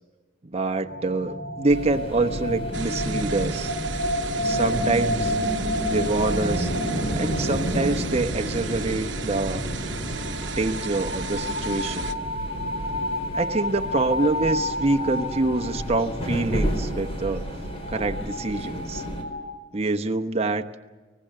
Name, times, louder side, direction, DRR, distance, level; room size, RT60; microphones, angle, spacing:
voice 1, 0.5-3.7 4.4-5.3 5.9-6.7 7.1-9.7 10.6-12.0 13.3-17.5 17.9-19.0 19.7-20.7, right 2 dB, 30° right, 7 dB, 1.0 m, -26 dB
sound 1, 0.8-19.5, left 1 dB, 55° left, 7.9 m, -32 dB
sound 2, 1.7-19.2, equal, 30° left, 4.1 m, -32 dB
sound 3, 2.7-12.1, right 5 dB, 65° right, 1.1 m, -35 dB
24.5 x 19.0 x 6.7 m, 1.3 s
head